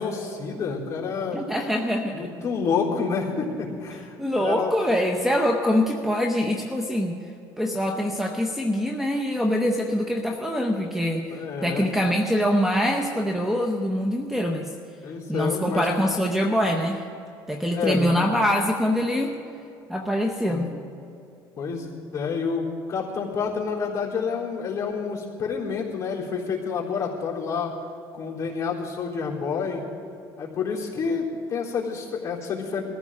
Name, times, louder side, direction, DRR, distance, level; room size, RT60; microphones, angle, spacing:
voice 1, 0.0-1.4 2.1-4.1 4.4-4.9 11.3-11.9 15.0-15.9 17.7-18.1 20.5-20.7 21.6-27.7 28.1-29.9 30.4-32.8, left 5 dB, 35° left, -5 dB, 3.6 m, -28 dB
voice 2, 1.3-2.2 4.2-7.2 7.6-14.7 15.3-17.0 17.5-19.3 19.9-20.7, equal, 5° right, 3 dB, 0.9 m, -24 dB
21.5 x 14.5 x 3.7 m, 2.7 s
cardioid pair, 125°, 9 cm